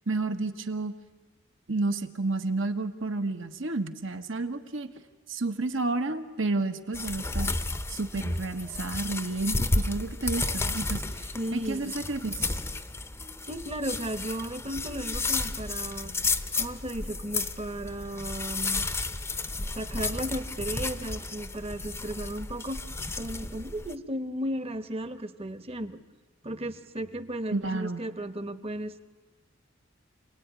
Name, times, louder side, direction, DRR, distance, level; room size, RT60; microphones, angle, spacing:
voice 1, 0.1-0.9 1.7-4.9 5.3-7.6 7.9-12.4 27.5-28.0, right 3 dB, 70° right, 7 dB, 1.5 m, -31 dB
sound 1, 6.9-23.9, left 3 dB, 15° left, 0.7 m, -32 dB
voice 2, 11.3-12.0 13.5-16.1 16.5-18.9 19.7-22.8 23.2-26.0 26.4-29.0, right 1 dB, 30° right, 11 dB, 1.1 m, -35 dB
28.5 x 18.5 x 9.7 m, 1.3 s
head